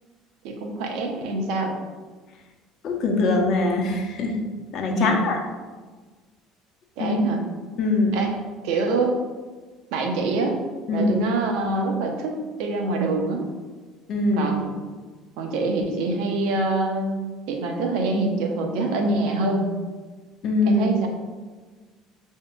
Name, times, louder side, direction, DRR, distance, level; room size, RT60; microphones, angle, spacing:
voice 1, 0.4-1.7 4.9-5.2 7.0-7.4 8.1-9.2 9.9-10.6 10.9-13.5 14.4-14.7 15.4-17.2 17.5-19.7 20.7-21.1, right 2 dB, 75° right, 2 dB, 0.7 m, -25 dB
voice 2, 2.8-4.4 4.7-5.4 7.0-7.2 7.8-8.2 10.9-11.1 14.1-14.5 20.4-20.9, left 2 dB, 55° left, 2 dB, 0.8 m, -22 dB
6.7 x 2.7 x 2.2 m, 1.4 s
supercardioid pair, 85°, 0 cm